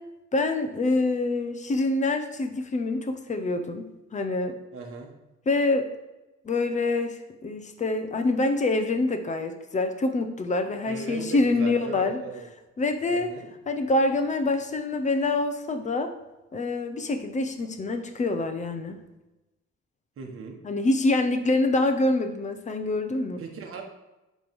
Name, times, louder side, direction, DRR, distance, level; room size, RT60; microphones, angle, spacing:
voice 1, 0.3-3.8 4.1-4.6 5.5-5.9 6.4-12.2 12.8-13.3 13.7-16.1 16.5-19.0 20.6-23.4, left 2 dB, 25° left, 7 dB, 0.6 m, -26 dB
voice 2, 4.7-5.1 10.8-12.5 13.1-13.5 20.2-20.6 23.4-23.8, right 4 dB, 50° right, 2 dB, 1.3 m, -38 dB
8.4 x 3.2 x 5.3 m, 1.0 s
cardioid pair, 165°, 29 cm